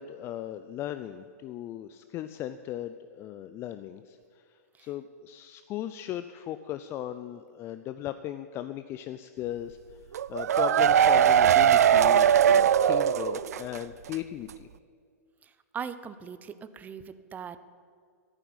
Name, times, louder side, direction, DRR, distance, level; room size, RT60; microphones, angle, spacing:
voice 1, 0.0-4.2 4.8-9.8 10.3-14.7, left 12 dB, 30° left, 11 dB, 0.5 m, -37 dB
sound 1, 10.1-13.8 14.1-14.2 14.5-14.6, right 9 dB, 70° right, 0.5 m, -20 dB
voice 2, 15.7-17.6, right 7 dB, 20° right, 13 dB, 0.6 m, -39 dB
11.5 x 9.2 x 10.0 m, 2.2 s
hypercardioid pair, 120°, 9 cm